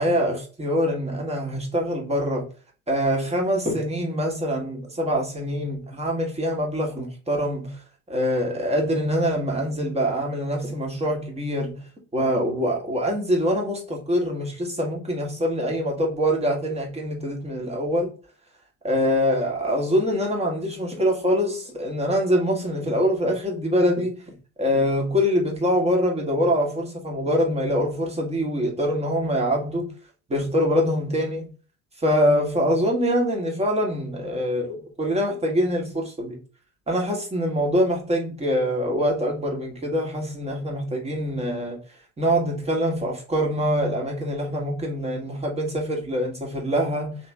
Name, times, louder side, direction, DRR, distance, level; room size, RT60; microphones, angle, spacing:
voice 1, 0.0-2.5 2.9-7.8 8.1-11.8 12.1-18.1 18.8-29.9 30.3-31.5 32.0-36.4 36.9-41.8 42.2-47.2, equal, 15° right, 1.4 m, -24 dB
3.4 x 3.1 x 3.2 m
figure-of-eight pair, 65°, 41 cm